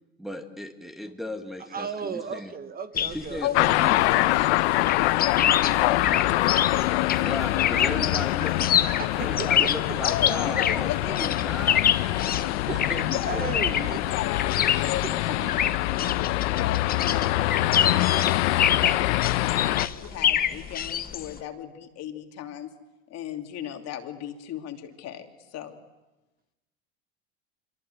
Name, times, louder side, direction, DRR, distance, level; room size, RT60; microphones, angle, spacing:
voice 1, 0.2-2.5 3.1-4.0 7.2-8.8 9.2-11.9 12.7-13.6, left 1 dB, ahead, 4 dB, 1.8 m, -36 dB
voice 2, 1.7-3.4 9.0-10.0 12.7-12.9 13.2-14.0 15.0-15.5, right 6 dB, 25° right, 10 dB, 1.3 m, -35 dB
sound 1, 2.9-21.4, left 9 dB, 25° left, 1.0 m, -27 dB
voice 3, 3.4-8.2 10.0-11.8 12.2-12.5 13.0-13.4 13.9-19.1 19.5-22.7 23.1-25.8, left 11 dB, 50° left, 5 dB, 2.8 m, -36 dB
sound 2, 3.5-19.9, left 17 dB, 80° left, 0.9 m, -25 dB
sound 3, 4.0-21.5, right 6 dB, 40° right, 5.5 m, -51 dB
25.5 x 23.5 x 8.0 m, 1.1 s
supercardioid pair, 115°, 33 cm